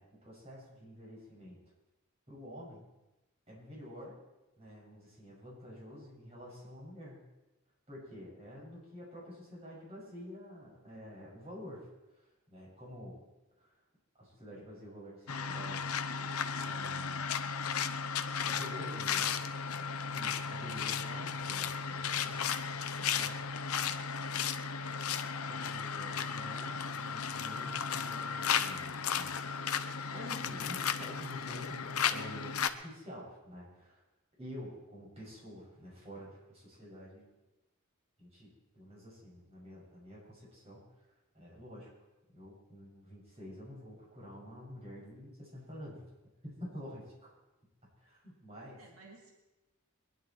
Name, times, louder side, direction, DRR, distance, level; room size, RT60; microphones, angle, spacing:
voice 1, 0.0-1.6 2.3-2.9 3.5-4.2 4.6-7.2 7.9-13.3 13.6-13.7 14.2-17.3 18.4-19.4 20.1-22.5 22.9-23.5 25.5-34.0 34.4-37.3 38.2-40.8 41.3-41.9 42.3-46.0 46.4-47.3 48.0-48.8, equal, 30° right, -4 dB, 6.5 m, -49 dB
sound 1, 15.3-32.7, left 7 dB, 85° left, 0.8 m, -35 dB
voice 2, 48.8-49.5, right 3 dB, 85° right, 0 dB, 2.3 m, -60 dB
22.0 x 11.0 x 4.6 m, 1.0 s
head